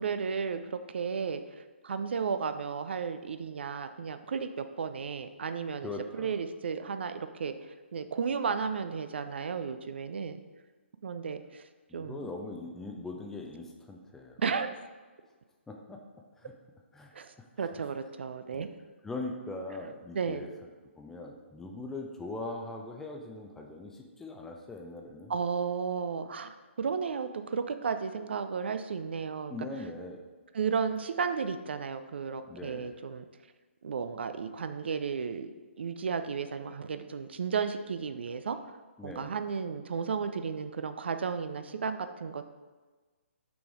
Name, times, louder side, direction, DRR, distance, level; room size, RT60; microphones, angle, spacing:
voice 1, 0.0-1.6 1.8-7.5 7.9-10.4 11.0-11.6 11.9-12.2 14.4-14.9 17.1-18.7 20.1-20.5 25.3-29.6 30.5-33.2 33.8-35.5 35.8-38.6 39.0-42.5, right 6 dB, 55° right, 10 dB, 0.4 m, -33 dB
voice 2, 5.8-6.4 11.9-14.4 15.7-16.0 16.4-16.5 16.9-17.7 18.5-18.7 19.0-20.5 21.0-25.3 29.5-30.2 32.5-32.9 39.0-39.3, left 2 dB, 5° left, 2 dB, 0.5 m, -41 dB
5.9 x 3.8 x 4.8 m, 1.3 s
figure-of-eight pair, 130°, 7 cm